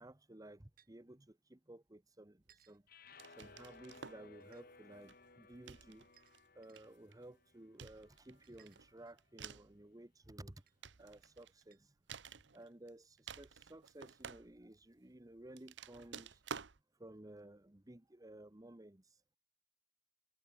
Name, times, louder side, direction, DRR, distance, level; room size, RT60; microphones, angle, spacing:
voice 1, 0.0-2.8 3.4-6.1 6.5-10.6 11.0-11.9 12.3-16.4 17.0-19.1, right 1 dB, 20° right, 1.1 m, -55 dB
sound 1, 0.8-0.9 2.5-2.8 4.4-4.7 6.1-6.8 8.4-9.3 10.7-10.8 11.7-11.8 12.6-12.7 13.6-13.7, right 10 dB, 55° right, 6.8 m, -69 dB
sound 2, 2.9-9.1, left 3 dB, 55° left, 5.6 m, -62 dB
sound 3, 3.2-4.3 5.0-5.3 5.7-6.4 6.8-7.2 7.8-9.8 10.4-11.6 12.1-12.9 13.2-14.8 15.5-16.8, right 6 dB, 80° right, 1.0 m, -51 dB
head